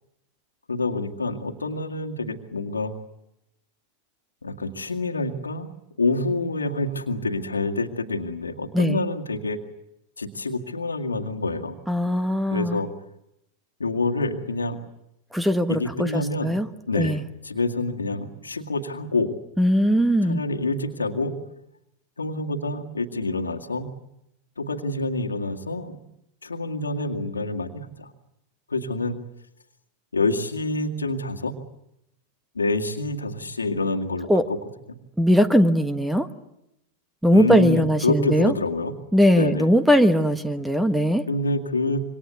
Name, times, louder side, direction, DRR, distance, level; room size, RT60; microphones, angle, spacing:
voice 1, 0.7-2.9 4.4-5.7 6.0-9.6 10.2-11.8 12.5-12.9 13.8-14.8 15.7-16.5 16.9-17.2 17.4-19.3 20.2-21.4 22.2-23.9 24.6-26.0 26.4-28.1 28.7-29.2 30.1-31.5 32.6-34.6 37.3-38.9 39.4-39.7 41.3-42.0, left 2 dB, 75° left, 3 dB, 2.1 m, -27 dB
voice 2, 11.9-12.8 15.3-16.7 16.9-17.2 19.6-20.4 34.3-34.5 35.2-36.3 37.2-38.5 39.1-41.2, equal, 5° right, 12 dB, 1.4 m, -20 dB
27.0 x 24.5 x 8.2 m, 0.82 s
figure-of-eight pair, 90°, 0 cm